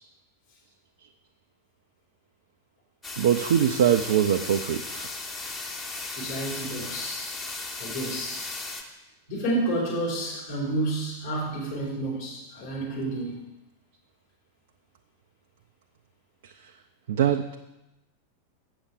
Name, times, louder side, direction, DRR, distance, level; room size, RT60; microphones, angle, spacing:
sound 1, 3.0-8.8, left 3 dB, 20° left, 1.2 m, -36 dB
voice 1, 3.2-5.1 17.1-17.6, right 9 dB, 60° right, 5 dB, 0.5 m, -23 dB
voice 2, 6.1-7.3 7.8-8.4 9.3-13.5, right 1 dB, 55° left, -7 dB, 4.3 m, -30 dB
8.0 x 7.0 x 6.3 m, 0.94 s
figure-of-eight pair, 90°, 0 cm